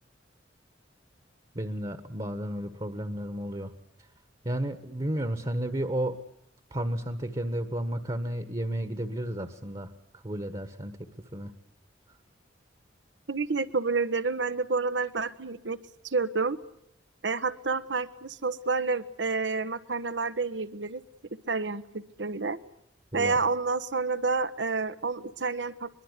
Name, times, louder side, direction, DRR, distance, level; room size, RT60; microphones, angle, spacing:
voice 1, 1.5-3.7 4.4-6.2 6.7-11.0 11.3-11.5 23.1-23.4, right 1 dB, 30° right, 10 dB, 1.4 m, -32 dB
voice 2, 13.3-15.8 16.0-16.6 17.2-21.0 21.5-22.6 23.1-25.9, right 4 dB, 75° right, 12 dB, 1.3 m, -29 dB
23.5 x 22.5 x 8.3 m, 0.79 s
head